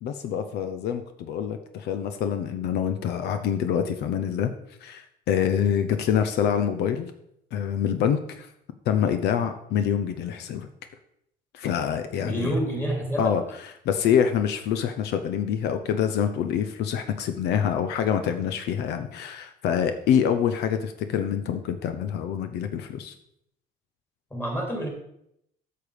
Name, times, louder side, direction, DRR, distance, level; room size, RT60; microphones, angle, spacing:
voice 1, 0.0-4.5 4.8-7.1 7.5-8.5 8.9-10.7 11.5-12.5 13.2-13.4 13.8-23.1, left 8 dB, 80° left, 9 dB, 0.7 m, -26 dB
voice 2, 12.2-13.3 24.3-24.9, right 1 dB, 15° left, 1 dB, 3.0 m, -28 dB
8.6 x 6.8 x 5.0 m, 0.76 s
cardioid pair, 110°, 17 cm